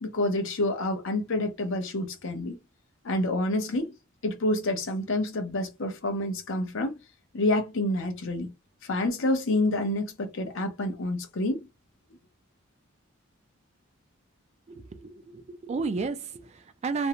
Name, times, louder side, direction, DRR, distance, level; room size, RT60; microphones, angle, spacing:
voice 1, 0.0-2.6 3.0-3.9 4.2-7.0 7.3-8.5 8.8-11.6, left 1 dB, 65° left, 0.6 m, -28 dB
voice 2, 14.7-17.1, right 4 dB, 30° right, 0.3 m, -32 dB
2.5 x 2.1 x 2.8 m
head